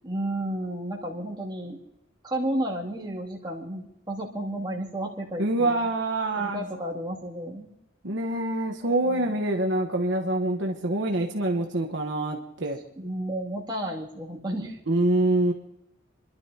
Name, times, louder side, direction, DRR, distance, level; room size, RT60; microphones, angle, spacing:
voice 1, 0.0-1.8 2.2-5.9 6.4-7.7 8.8-9.2 13.0-14.8, right 1 dB, 20° right, -3 dB, 2.5 m, -32 dB
voice 2, 5.4-6.6 8.0-12.8 14.9-15.5, right 2 dB, 65° right, 2 dB, 1.2 m, -25 dB
29.0 x 12.0 x 2.9 m, 0.86 s
head